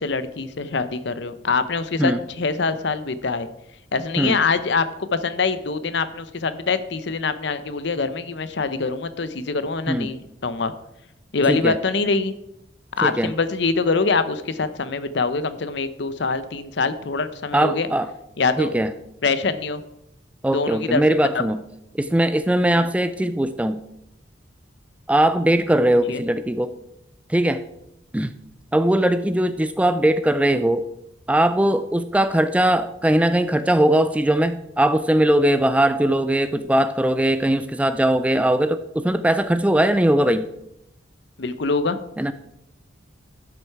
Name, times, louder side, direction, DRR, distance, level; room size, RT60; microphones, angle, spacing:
voice 1, 0.0-3.5 3.9-10.7 11.3-12.4 13.0-17.9 18.4-18.7 19.2-19.8 20.5-21.0 21.3-21.5 22.7-22.8 25.9-26.2 41.4-42.0, left 4 dB, 65° left, 13 dB, 0.7 m, -24 dB
voice 2, 13.0-13.3 17.5-18.1 18.6-18.9 20.4-21.6 21.9-23.8 25.1-26.7 27.3-27.6 28.1-28.3 28.7-30.8 31.3-40.5 42.2-42.3, right 1 dB, 5° right, 12 dB, 0.3 m, -20 dB
12.0 x 6.5 x 4.6 m, 0.84 s
head